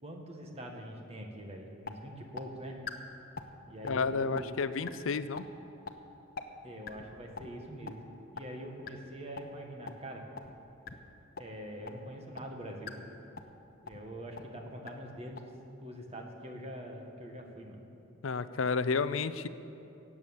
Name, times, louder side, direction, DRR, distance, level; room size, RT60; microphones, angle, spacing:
voice 1, 0.0-2.8 3.7-4.5 6.6-10.2 11.4-13.0 13.8-17.8, equal, 30° right, 2 dB, 1.7 m, -44 dB
sound 1, 1.4-1.5 1.9-2.0 2.4-2.5 2.9-3.0 3.4-3.6 3.9-4.0 4.4-4.5 4.9-5.0 5.4-5.5 5.9-6.0 6.4-6.5 6.9-7.0 7.4-7.5 7.9-8.0 8.4-8.5 8.9-9.0 9.4-9.5 9.9-10.0 10.4-10.5 10.9-11.0 11.4-11.5 11.9-12.0 12.4-12.5 12.9-13.0 13.4-13.6 13.9-14.0 14.4-14.5 14.9-15.0 15.4-15.5, left 5 dB, 50° left, 0.9 m, -40 dB
voice 2, 3.8-5.5 18.2-19.5, left 4 dB, 75° left, 14 dB, 0.5 m, -31 dB
17.0 x 8.4 x 7.3 m, 2.8 s
head